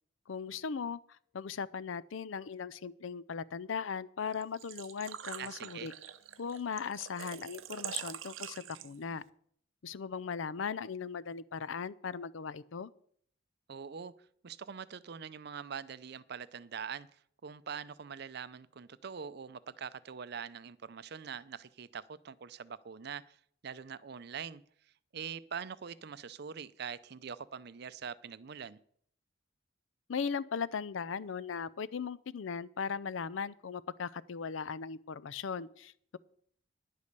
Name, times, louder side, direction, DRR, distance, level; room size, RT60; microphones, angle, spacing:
voice 1, 0.3-5.9 6.4-9.2 9.8-12.9 30.1-36.2, left 6 dB, 75° left, 18 dB, 0.5 m, -38 dB
Engine / Trickle dribble / Fill (with liquid), 4.3-9.2, right 10 dB, 90° right, 0.7 m, -44 dB
voice 2, 5.4-5.9 13.7-14.1 14.4-23.4 23.6-24.6 25.1-28.8, right 7 dB, 55° right, 16 dB, 0.5 m, -43 dB
10.5 x 8.4 x 6.7 m, 0.63 s
head